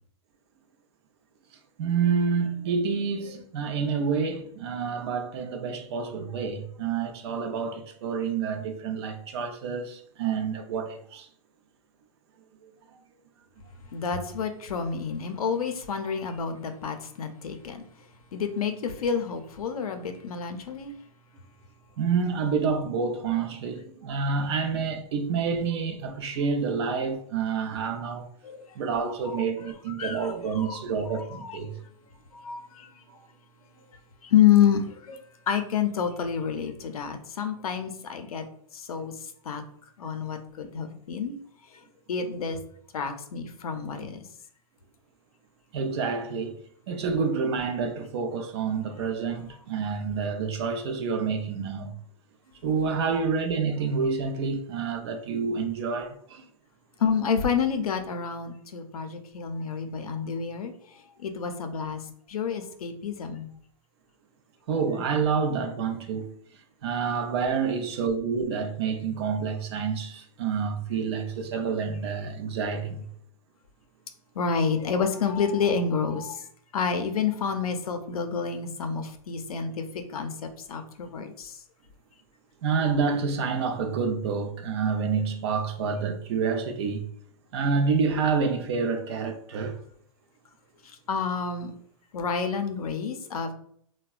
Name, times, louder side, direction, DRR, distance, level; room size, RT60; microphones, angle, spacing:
voice 1, 1.8-11.3 22.0-28.3 28.8-31.7 45.7-46.5 46.9-51.9 52.6-56.5 64.7-66.3 66.8-73.0 82.6-87.1 87.5-89.8, right 5 dB, 50° right, 0.4 m, -28 dB
voice 2, 13.9-17.8 18.3-20.9 28.4-28.7 29.2-29.4 29.9-30.8 31.1-31.6 32.3-32.9 34.2-38.4 38.7-39.1 39.4-39.6 40.0-41.3 41.7-41.8 42.1-42.6 42.9-44.3 53.0-53.1 57.0-62.0 62.3-63.5 74.3-76.4 76.7-81.6 91.1-91.7 92.1-93.5, left 7 dB, 85° left, 0.5 m, -28 dB
3.4 x 2.1 x 2.3 m
hypercardioid pair, 140°, 18 cm